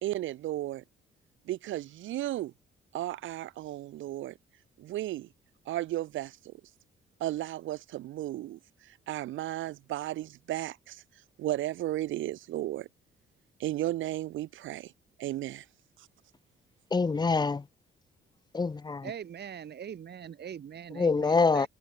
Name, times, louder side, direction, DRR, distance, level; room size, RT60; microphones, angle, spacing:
voice 1, 0.0-0.8 1.5-2.5 2.9-4.4 4.8-5.3 5.7-6.5 7.2-8.6 8.9-11.0 11.4-12.9 13.6-14.9 15.2-15.6, right 14 dB, 75° right, 0.8 m, -34 dB
voice 2, 16.9-17.6 18.5-19.0 21.0-21.7, left 4 dB, 20° left, 0.7 m, -25 dB
voice 3, 19.0-21.7, right 8 dB, 55° right, 4.6 m, -42 dB
cardioid pair, 90°, 20 cm